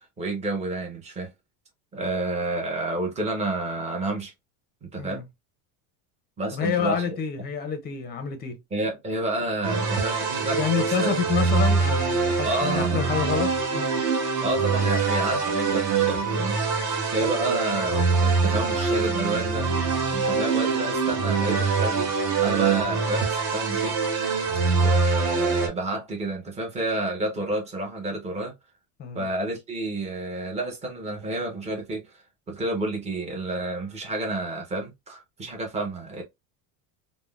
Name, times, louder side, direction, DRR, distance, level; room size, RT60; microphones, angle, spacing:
voice 1, 0.2-1.3 1.9-4.3 4.8-5.2 6.4-7.0 8.7-11.1 12.4-13.3 14.4-16.6 17.1-19.7 20.1-22.1 22.4-24.0 24.8-28.5 29.1-32.1 32.5-36.2, right 2 dB, 15° right, 0.8 m, -30 dB
voice 2, 6.5-8.6 10.6-14.0 29.0-29.3, left 7 dB, 20° left, 0.6 m, -28 dB
sound 1, 9.6-25.7, right 5 dB, 40° right, 1.0 m, -24 dB
3.5 x 2.1 x 2.3 m
cardioid pair, 160°, 44 cm